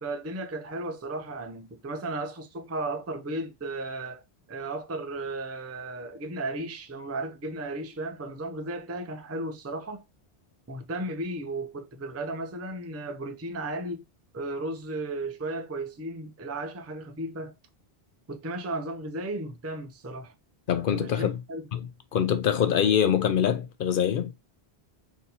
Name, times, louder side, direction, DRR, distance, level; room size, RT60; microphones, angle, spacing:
voice 1, 0.0-4.2 4.5-10.0 10.7-14.1 14.3-17.5 18.3-20.3 21.0-21.6, right 2 dB, 25° right, 0.3 m, -35 dB
voice 2, 20.7-21.4 21.7-24.3, left 9 dB, 60° left, 0.7 m, -24 dB
3.9 x 2.8 x 4.0 m
omnidirectional pair, 1.1 m